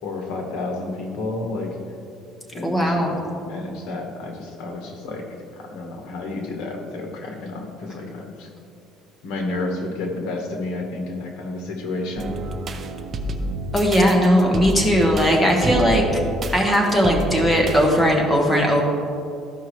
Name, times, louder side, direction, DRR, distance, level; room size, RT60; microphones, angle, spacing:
voice 1, 0.0-1.7 2.5-3.2 3.4-5.3 5.5-8.5 9.2-12.3 17.4-17.6, left 2 dB, 75° left, 2 dB, 1.4 m, -30 dB
voice 2, 2.6-3.1 13.7-16.1 16.5-18.8, equal, 5° left, -1 dB, 1.1 m, -18 dB
sound 1, 12.2-18.1, right 1 dB, 30° right, 0.5 m, -30 dB
13.0 x 5.5 x 3.2 m, 2.6 s
cardioid pair, 170°, 0 cm